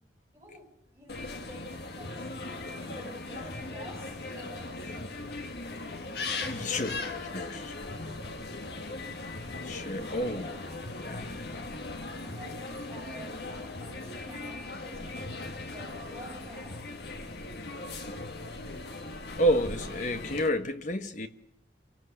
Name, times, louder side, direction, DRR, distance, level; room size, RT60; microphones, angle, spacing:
voice 1, 0.3-0.7 0.9-2.3 2.8-4.9 6.2-7.5 9.9-11.1 12.2-16.8, right 1 dB, 15° right, 6.8 m, -49 dB
sound 1, 1.1-20.5, left 3 dB, 65° left, 1.7 m, -39 dB
voice 2, 6.5-7.0 7.3-7.7 9.6-10.5 11.0-11.4 19.4-21.3, equal, 45° left, 1.3 m, -30 dB
27.5 x 17.5 x 6.7 m
head